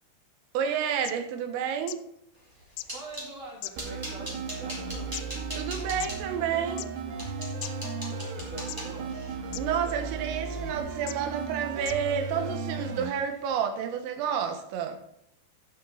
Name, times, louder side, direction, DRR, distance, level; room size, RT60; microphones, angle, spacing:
voice 1, 0.6-2.0 5.6-6.9 9.6-15.0, right 8 dB, 85° right, 3.8 m, -30 dB
sound 1, 0.7-0.8 1.0-1.1 1.9-2.0 2.8-2.9 3.6-4.1 4.8-5.2 6.0-6.1 6.7-6.9 7.6-7.7 8.7-9.0 9.5-9.6 10.4-10.5 11.1-11.2 11.8-12.0 12.8-12.9, left 17 dB, 85° left, 2.7 m, -38 dB
sound 2, 2.4-3.3 3.8-6.2 6.8-6.9 7.2-11.4 11.7-12.2 12.4-12.6 13.0-13.2, equal, 5° right, 3.0 m, -42 dB
voice 2, 2.5-5.1 8.0-9.1, right 2 dB, 50° right, 5.0 m, -45 dB
sound 3, 3.8-13.1, right 4 dB, 65° right, 3.2 m, -35 dB
15.5 x 6.5 x 4.2 m
omnidirectional pair, 5.7 m